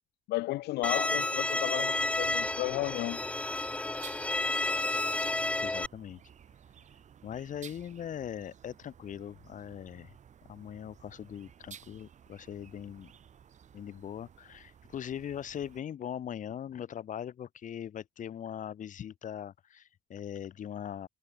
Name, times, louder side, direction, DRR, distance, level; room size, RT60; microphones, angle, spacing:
voice 1, 0.3-3.2, left 18 dB, 75° left, 0.5 m, -33 dB
Bowed string instrument, 0.8-5.9, left 2 dB, 5° left, 0.4 m, -31 dB
sound 1, 2.0-15.8, right 8 dB, 45° right, 2.4 m, -55 dB
voice 2, 5.6-6.2 7.2-10.1 10.5-13.1 13.7-21.1, left 9 dB, 50° left, 2.0 m, -40 dB
cardioid pair, 110°, 17 cm